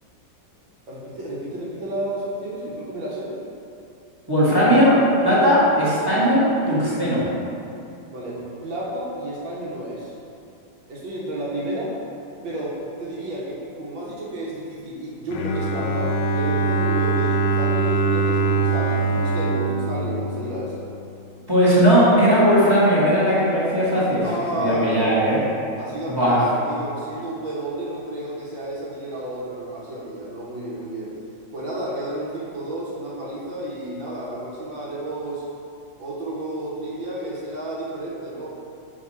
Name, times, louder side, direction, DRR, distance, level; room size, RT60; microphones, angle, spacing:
voice 1, 0.9-3.3 8.1-10.1 10.9-11.9 12.4-20.9 24.2-25.1 25.8-31.1 31.5-35.4 36.0-38.5, right 1 dB, 85° right, -5 dB, 1.7 m, -31 dB
voice 2, 4.3-7.3 21.5-24.3 24.6-25.4 26.1-26.4, equal, 15° right, -9 dB, 1.0 m, -18 dB
Bowed string instrument, 15.3-21.2, right 3 dB, 75° left, 1.2 m, -23 dB
4.9 x 3.4 x 5.5 m, 2.6 s
omnidirectional pair, 2.1 m